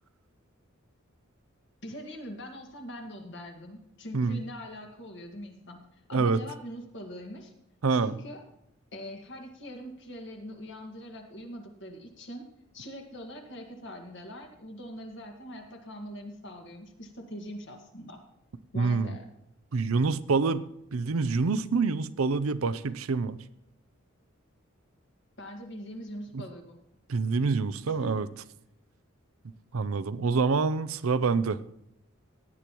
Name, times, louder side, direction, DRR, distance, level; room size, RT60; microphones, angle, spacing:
voice 1, 1.8-7.5 7.9-8.4 8.9-12.5 12.7-18.2 18.7-19.3 25.4-26.8 27.9-28.2, equal, 60° left, 3 dB, 1.8 m, -42 dB
voice 2, 7.8-8.1 18.8-19.2 19.7-20.6 20.9-23.4 26.3-26.4 27.1-28.3 29.7-31.6, right 4 dB, 85° right, 15 dB, 0.6 m, -26 dB
16.5 x 9.9 x 3.0 m, 0.80 s
head